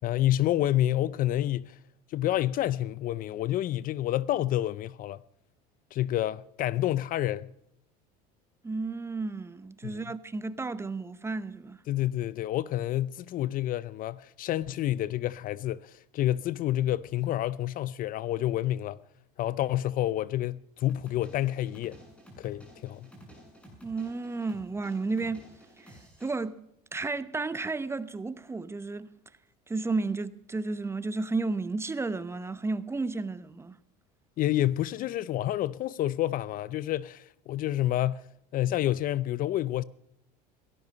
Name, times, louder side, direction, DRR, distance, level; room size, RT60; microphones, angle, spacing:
voice 1, 0.0-1.8 2.1-5.2 5.9-7.5 9.8-10.0 11.9-19.0 19.4-22.0 22.4-23.1 34.4-38.3 38.5-39.8, left 13 dB, 45° left, 0.5 m, -29 dB
voice 2, 8.6-11.8 23.8-25.5 25.8-25.9 26.2-26.5 26.9-29.1 29.7-33.8, right 3 dB, 15° right, 0.8 m, -32 dB
sound 1, 20.9-26.4, equal, 5° left, 7.8 m, -52 dB
17.5 x 13.5 x 5.4 m
supercardioid pair, 125°, 20 cm